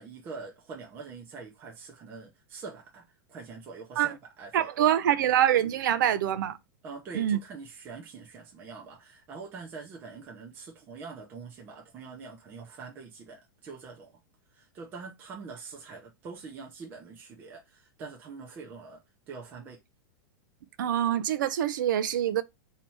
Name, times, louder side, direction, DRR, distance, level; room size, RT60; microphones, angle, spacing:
voice 1, 0.0-4.8 6.8-14.2 14.5-19.8, right 4 dB, 15° right, 0.7 m, -44 dB
voice 2, 4.5-6.6 7.1-7.4 20.8-22.4, right 10 dB, 60° right, 0.5 m, -25 dB
3.3 x 2.9 x 4.3 m
supercardioid pair, 180°, 12 cm